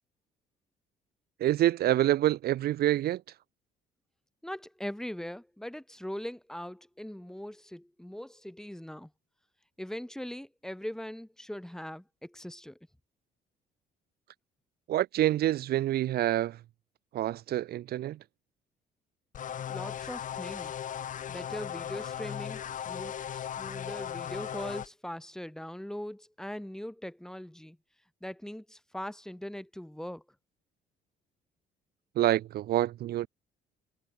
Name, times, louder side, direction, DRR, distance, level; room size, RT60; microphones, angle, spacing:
voice 1, 1.4-3.2 14.9-16.6 17.1-18.2 32.2-33.3, right 13 dB, 65° right, 2.2 m, -27 dB
voice 2, 4.4-9.1 9.8-12.8 19.7-20.7 21.3-27.8 28.2-30.2, equal, 5° left, 7.5 m, -41 dB
sound 1, 19.3-24.9, left 9 dB, 50° left, 2.3 m, -37 dB
cardioid pair, 110°, 17 cm